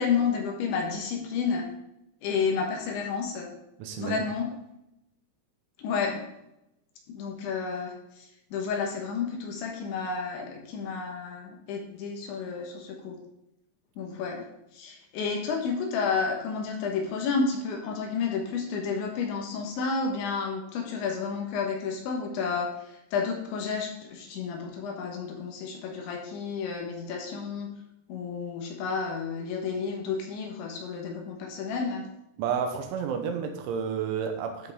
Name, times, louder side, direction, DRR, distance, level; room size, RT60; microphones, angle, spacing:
voice 1, 0.0-1.7 2.2-3.5 4.0-4.5 5.8-6.2 7.1-13.2 14.0-14.5 14.7-27.7 28.1-32.1, left 5 dB, 70° left, 1 dB, 3.5 m, -31 dB
voice 2, 3.8-4.2 32.4-34.7, right 7 dB, 80° right, 5 dB, 3.2 m, -30 dB
13.0 x 5.9 x 3.6 m, 0.86 s
omnidirectional pair, 5.8 m